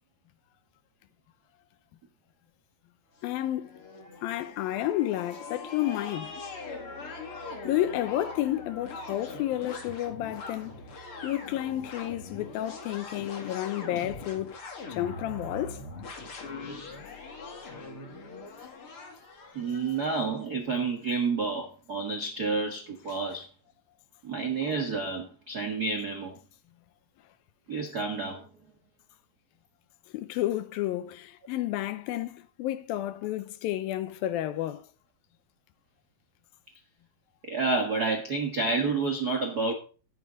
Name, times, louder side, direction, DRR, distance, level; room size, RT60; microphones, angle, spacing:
voice 1, 3.2-3.8 4.2-6.3 7.6-14.6 14.9-15.8 16.9-17.3 23.1-23.2 30.1-34.9, left 13 dB, 80° left, 2.4 m, -31 dB
sound 1, 3.2-20.3, left 3 dB, 40° left, 2.5 m, -42 dB
voice 2, 19.5-23.5 24.2-26.4 27.7-28.4 37.5-39.7, right 4 dB, 70° right, 0.9 m, -29 dB
12.5 x 10.5 x 3.9 m
omnidirectional pair, 4.3 m